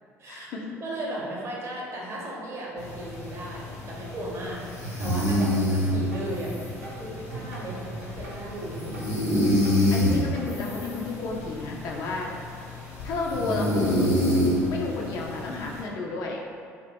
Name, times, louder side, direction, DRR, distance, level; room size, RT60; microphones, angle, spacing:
voice 1, 0.3-0.8 5.8-5.9 8.8-9.1 9.9-12.3 13.0-14.1 14.5-16.6, left 3 dB, 50° left, -1 dB, 0.3 m, -32 dB
voice 2, 0.8-6.5 7.0-9.0, right 1 dB, 35° right, -3 dB, 0.6 m, -36 dB
sound 1, 2.8-15.8, left 1 dB, 75° left, 0.7 m, -28 dB
sound 2, 4.8-10.5, right 2 dB, 75° right, 0.4 m, -40 dB
2.2 x 2.0 x 3.4 m, 2.2 s
figure-of-eight pair, 55°, 8 cm